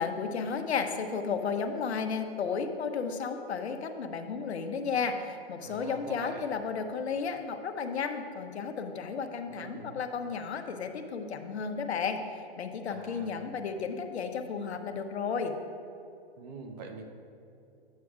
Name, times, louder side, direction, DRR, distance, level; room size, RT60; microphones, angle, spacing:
voice 1, 0.0-15.6, left 5 dB, 90° left, 7 dB, 0.8 m, -33 dB
voice 2, 5.6-6.5 9.5-10.0 12.9-13.4 16.4-17.1, right 4 dB, 40° right, 4 dB, 0.8 m, -44 dB
10.5 x 8.3 x 2.4 m, 2.7 s
hypercardioid pair, 150°, 32 cm